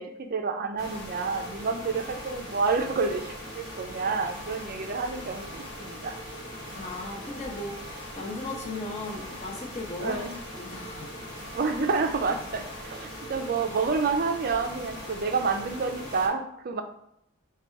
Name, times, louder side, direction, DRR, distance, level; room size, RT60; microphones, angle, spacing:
voice 1, 0.0-6.2 10.0-10.4 11.5-16.8, right 4 dB, 40° right, 7 dB, 0.4 m, -29 dB
sound 1, 0.8-16.3, equal, 55° left, 1.2 m, -40 dB
voice 2, 6.7-10.2 10.5-11.2, left 2 dB, 30° left, 1 dB, 0.7 m, -37 dB
4.0 x 2.3 x 4.5 m, 0.75 s
head